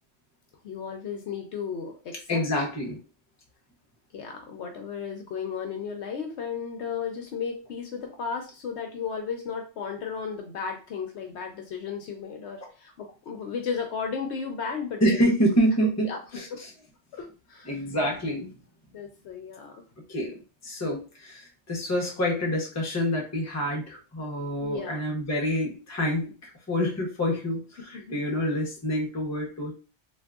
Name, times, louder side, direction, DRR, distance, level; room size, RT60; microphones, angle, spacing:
voice 1, 0.6-2.4 4.1-15.0 16.0-16.2 16.5-16.6 17.1-17.7 18.9-19.8 24.6-25.0 27.9-28.2, left 6 dB, 65° left, 3 dB, 0.8 m, -34 dB
voice 2, 2.3-3.0 15.0-16.7 17.7-18.5 20.1-29.7, equal, 15° left, -1 dB, 0.6 m, -27 dB
3.5 x 2.5 x 2.3 m, 0.34 s
omnidirectional pair, 1.3 m